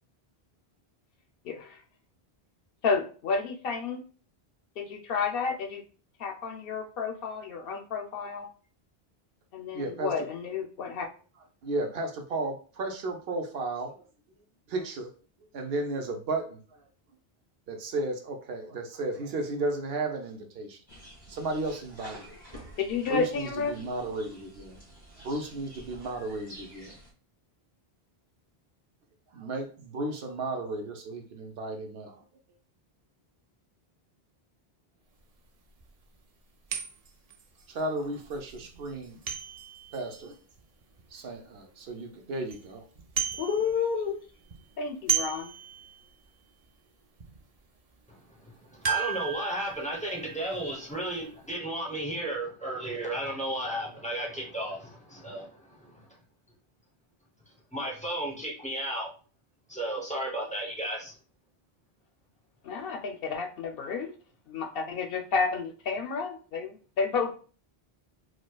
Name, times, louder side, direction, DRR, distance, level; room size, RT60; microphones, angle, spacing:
voice 1, 1.4-1.8 2.8-4.0 4.8-5.8 6.2-8.5 9.5-11.1 22.8-23.8 43.4-44.2 44.8-45.5 62.6-64.1 64.5-67.3, left 5 dB, 70° left, 5 dB, 0.7 m, -31 dB
voice 2, 9.7-10.1 11.6-14.1 14.7-15.1 15.4-16.9 17.7-20.8 21.3-22.3 22.6-22.7 23.1-24.8 25.2-27.0 29.3-32.2 37.7-39.2 39.9-40.4 41.1-42.8, right 2 dB, 75° right, 4 dB, 0.9 m, -34 dB
sound 1, 20.9-27.1, equal, 25° right, 1.2 m, -49 dB
sound 2, 35.2-35.3 35.8-35.9 36.7-41.4 41.9-42.0 42.3-42.6 42.9-44.0 44.3-46.2 46.6-46.7 47.2-47.4 48.8-51.2 51.5-51.6, right 8 dB, 50° right, 0.5 m, -35 dB
voice 3, 48.1-56.0 57.7-59.1 59.7-61.1, right 1 dB, 10° left, -2 dB, 0.7 m, -34 dB
4.7 x 2.1 x 2.2 m, 0.39 s
omnidirectional pair, 1.0 m